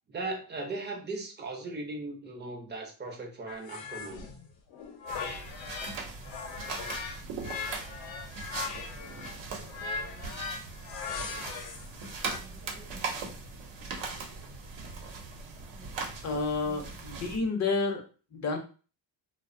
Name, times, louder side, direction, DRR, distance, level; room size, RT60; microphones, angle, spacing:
voice 1, 0.1-4.2 10.0-10.5 12.3-13.2 15.7-15.9 16.6-17.0, right 2 dB, 25° right, 1 dB, 0.5 m, -39 dB
sound 1, 3.5-6.0 6.2-12.4, left 5 dB, 75° left, 0.7 m, -39 dB
sound 2, 5.1-17.4, right 4 dB, 75° right, 0.8 m, -40 dB
voice 2, 16.2-18.0 18.3-18.6, left 3 dB, 35° left, 3 dB, 0.6 m, -30 dB
2.6 x 2.0 x 2.5 m, 0.36 s
cardioid pair, 120°, 46 cm